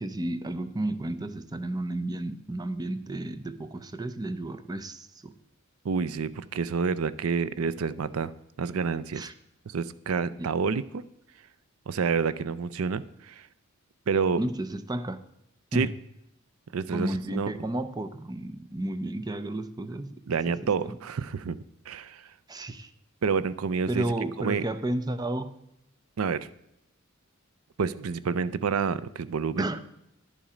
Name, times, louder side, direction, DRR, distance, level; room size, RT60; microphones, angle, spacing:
voice 1, 0.0-5.3 9.1-9.3 10.4-10.5 14.4-15.2 15.7-15.9 16.9-20.2 20.5-21.0 22.5-22.9 23.9-25.5 29.6-29.8, right 1 dB, 20° right, 11 dB, 0.6 m, -32 dB
voice 2, 5.8-8.3 8.6-9.3 9.7-11.0 11.9-13.5 14.1-14.4 15.7-15.9 16.7-17.5 20.3-21.6 21.9-22.3 23.2-24.0 24.4-24.6 26.2-26.5 27.8-29.7, right 5 dB, 85° right, 16 dB, 0.5 m, -28 dB
11.0 x 7.2 x 5.0 m, 0.81 s
head